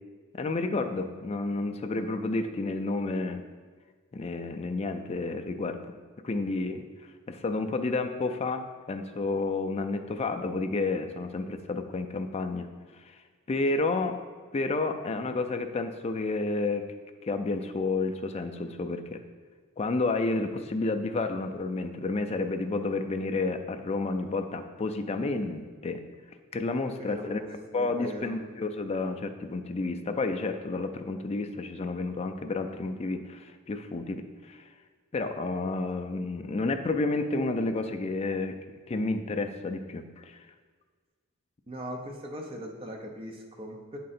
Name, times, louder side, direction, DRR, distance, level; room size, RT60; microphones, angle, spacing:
voice 1, 0.3-3.4 4.1-5.8 6.2-6.9 7.3-12.7 13.1-13.2 13.5-14.2 14.5-16.9 17.2-19.2 19.8-26.0 26.5-27.4 27.7-34.7 35.1-38.6 38.9-40.4, left 3 dB, 30° left, 7 dB, 0.3 m, -30 dB
voice 2, 27.0-28.4 41.7-44.0, equal, 25° right, 1 dB, 0.7 m, -40 dB
7.6 x 3.7 x 4.2 m, 1.5 s
head